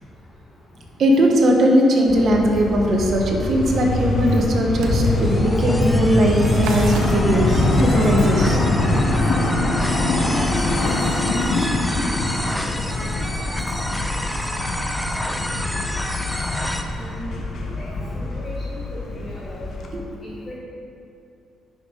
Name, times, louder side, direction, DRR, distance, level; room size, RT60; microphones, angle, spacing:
voice 1, 1.0-8.6 19.9-20.2, equal, 55° right, 0 dB, 1.3 m, -19 dB
sound 1, 2.1-19.9, left 2 dB, 60° left, 1.0 m, -23 dB
sound 2, 4.3-16.8, equal, 5° left, 0.6 m, -30 dB
sound 3, 4.6-5.4 5.9-8.9 10.2-12.0 13.3-13.4, right 4 dB, 85° right, 0.7 m, -38 dB
voice 2, 16.9-17.4 17.8-19.7 20.2-20.5, left 1 dB, 30° left, -8 dB, 1.9 m, -36 dB
10.0 x 5.6 x 4.0 m, 2.6 s
cardioid pair, 90°, 0 cm